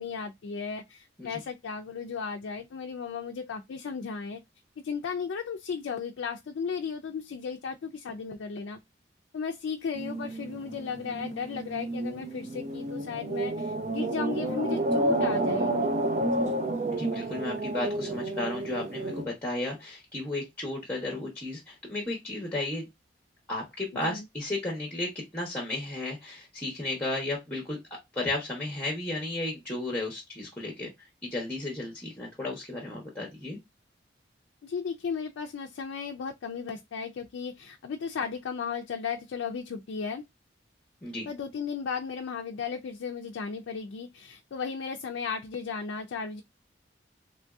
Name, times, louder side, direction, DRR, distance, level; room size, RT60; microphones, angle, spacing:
voice 1, 0.0-4.4 4.8-8.8 9.3-16.0 16.3-16.5 23.9-24.3 34.6-40.2 41.3-46.4, left 6 dB, 85° left, 0.4 m, -35 dB
sound 1, 10.0-19.2, right 1 dB, 35° right, 0.5 m, -30 dB
voice 2, 16.9-22.9 23.5-27.8 28.1-30.9 31.2-33.6 41.0-41.3, left 2 dB, 10° left, 0.9 m, -34 dB
3.0 x 2.6 x 2.2 m
head